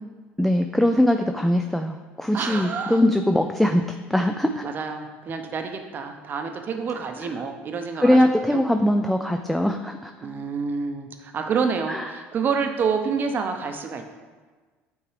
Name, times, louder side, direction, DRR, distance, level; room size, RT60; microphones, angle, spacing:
voice 1, 0.4-3.8 4.1-4.7 8.0-10.1 11.9-12.1, left 1 dB, 5° left, 5 dB, 0.3 m, -21 dB
voice 2, 2.3-3.0 4.6-8.6 10.2-14.0, right 5 dB, 40° right, 5 dB, 0.7 m, -28 dB
8.7 x 3.6 x 3.2 m, 1.4 s
supercardioid pair, 95°, 5 cm